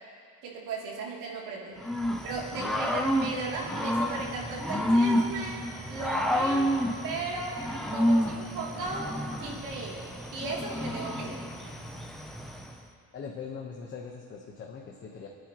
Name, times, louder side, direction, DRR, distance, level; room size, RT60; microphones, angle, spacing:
voice 1, 0.4-1.8 2.2-5.6 5.9-6.7 7.0-7.6 7.9-9.1 9.4-11.4, right 3 dB, 65° right, -4 dB, 3.1 m, -36 dB
Growling / Cricket, 1.8-12.7, equal, ahead, 0.7 m, -29 dB
voice 2, 13.1-15.3, left 6 dB, 35° left, -1 dB, 1.2 m, -41 dB
29.0 x 9.7 x 3.1 m, 2.2 s
cardioid pair, 165°, 34 cm